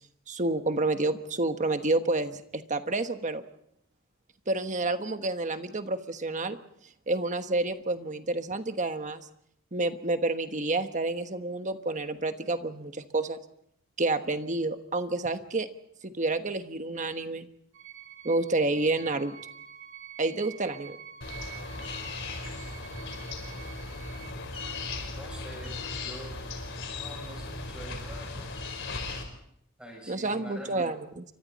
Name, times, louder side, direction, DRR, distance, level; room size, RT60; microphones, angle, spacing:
voice 1, 0.3-3.4 4.5-6.6 7.1-9.3 9.7-13.4 14.0-15.7 16.0-17.5 18.2-19.4 20.2-21.0 30.1-31.2, right 2 dB, 35° right, 8 dB, 1.3 m, -29 dB
sound 1, 17.7-24.3, right 8 dB, 60° right, 1.6 m, -47 dB
sound 2, 21.2-29.2, left 3 dB, 60° left, 4.5 m, -37 dB
voice 2, 25.1-25.8 26.0-26.3 26.9-28.5 29.8-30.9, right 1 dB, 5° right, 0 dB, 7.5 m, -45 dB
29.0 x 25.0 x 4.2 m, 0.71 s
head